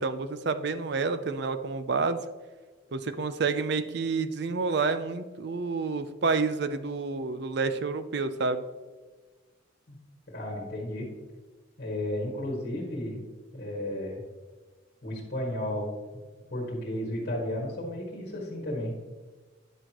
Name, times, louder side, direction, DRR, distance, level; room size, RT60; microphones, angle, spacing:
voice 1, 0.0-2.2 2.9-8.6, right 4 dB, 55° right, 10 dB, 0.5 m, -29 dB
voice 2, 10.3-11.1 11.8-13.2 13.5-14.2 15.0-15.9 16.5-18.9, left 1 dB, 50° left, -3 dB, 1.9 m, -33 dB
10.5 x 6.3 x 3.0 m, 1.3 s
head